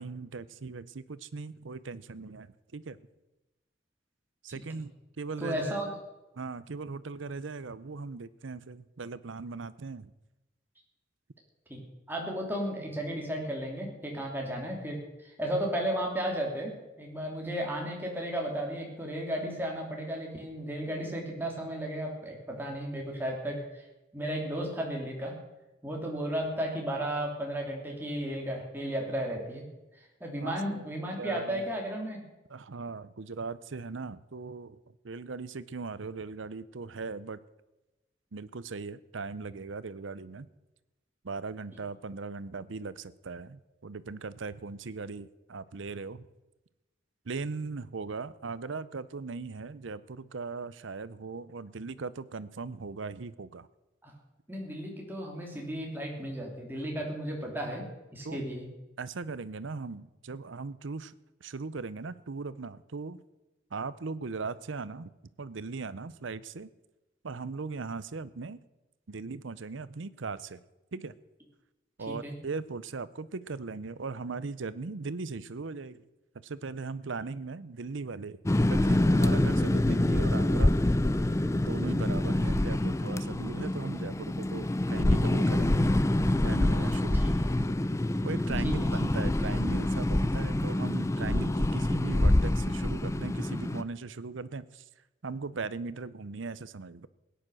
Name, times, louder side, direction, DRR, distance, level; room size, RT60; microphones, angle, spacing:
voice 1, 0.0-3.0 4.4-5.9 6.3-10.1 30.4-30.9 31.2-31.6 32.5-37.4 38.3-40.5 41.2-46.3 47.2-53.7 58.2-58.4 59.0-61.1 61.4-63.2 63.7-65.1 65.4-66.7 67.2-68.6 69.1-70.6 70.9-71.1 72.0-76.0 76.3-78.4 78.7-80.7 81.5-85.9 86.4-87.3 88.2-94.9 95.2-97.1, right 4 dB, 80° right, 17 dB, 0.7 m, -39 dB
voice 2, 5.4-5.9 11.7-11.8 12.1-16.7 17.0-23.8 24.1-25.3 25.8-29.6 29.9-32.2 54.0-54.1 54.5-57.8 58.1-58.7 72.1-72.3 87.2-87.3 88.6-88.7, right 1 dB, 10° right, 0 dB, 3.0 m, -34 dB
sound 1, 78.5-93.8, left 1 dB, 15° left, 0.4 m, -26 dB
17.0 x 10.0 x 6.4 m, 1.0 s
head